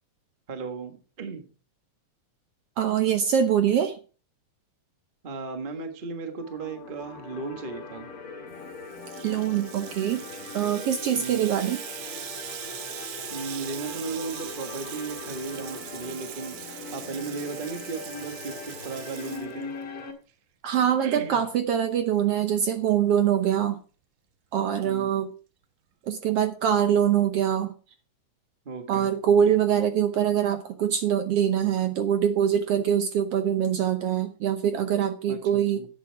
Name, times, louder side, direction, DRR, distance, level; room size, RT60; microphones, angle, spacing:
voice 1, 0.5-1.4 5.2-8.1 11.1-11.5 13.3-19.7 21.0-21.4 24.8-25.1 28.6-29.1 35.3-35.9, right 4 dB, 35° right, 7 dB, 0.8 m, -36 dB
voice 2, 2.8-4.0 9.2-10.2 10.5-11.8 20.6-23.8 24.5-25.3 26.1-27.7 28.9-35.8, right 9 dB, 70° right, 8 dB, 1.6 m, -24 dB
sound 1, 6.4-20.1, left 4 dB, 50° left, 2.4 m, -41 dB
Water tap faucet / Sink (filling or washing), 8.6-20.0, right 10 dB, 85° right, 2.5 m, -41 dB
11.0 x 8.5 x 4.6 m, 0.37 s
omnidirectional pair, 3.4 m